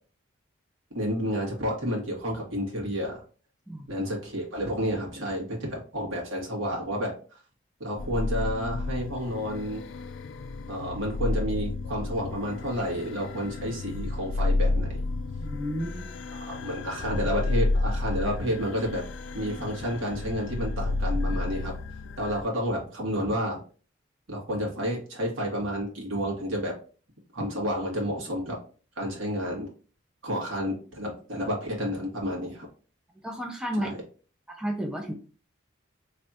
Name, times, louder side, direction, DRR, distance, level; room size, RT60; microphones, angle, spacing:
voice 1, 0.9-3.2 3.9-7.4 7.8-9.8 10.7-15.0 16.3-19.0 19.3-21.7 22.2-23.6 24.3-26.7 27.3-28.6 29.0-29.7 30.2-32.7 33.7-34.0, equal, 80° right, -2 dB, 1.6 m, -30 dB
sound 1, 8.0-22.4, left 2 dB, 65° left, 0.3 m, -31 dB
voice 2, 15.4-16.1 33.2-33.9 34.5-35.1, equal, 5° right, 0 dB, 0.5 m, -32 dB
3.3 x 2.4 x 4.1 m, 0.38 s
head